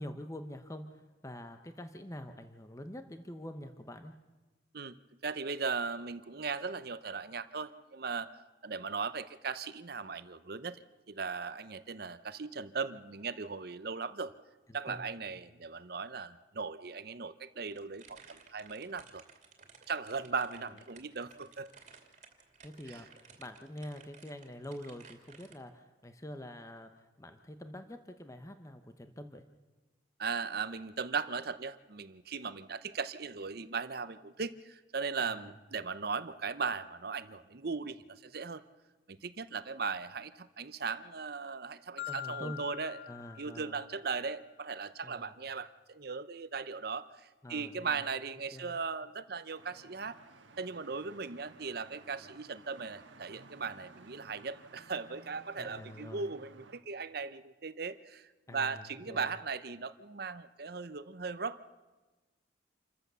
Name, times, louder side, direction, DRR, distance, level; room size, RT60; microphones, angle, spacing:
voice 1, 0.0-4.1 14.7-15.0 22.6-26.9 27.2-29.4 35.2-35.5 42.1-42.6 43.1-43.8 45.0-45.3 47.4-48.0 48.5-48.7 55.6-56.3 58.5-59.3, left 1 dB, 15° left, 8 dB, 0.9 m, -46 dB
voice 2, 5.2-14.3 14.7-19.2 19.9-21.7 22.9-23.1 30.2-38.6 39.1-43.0 43.4-50.2 50.6-61.6, right 5 dB, 55° right, 14 dB, 0.8 m, -38 dB
sound 1, 17.7-25.5, right 5 dB, 40° right, 2.5 m, -57 dB
Marimba xylophone, 42.0-44.2, left 11 dB, 65° left, 0.6 m, -44 dB
sound 2, 49.5-56.8, right 3 dB, 90° right, 1.5 m, -56 dB
27.5 x 14.5 x 6.9 m, 1.2 s
head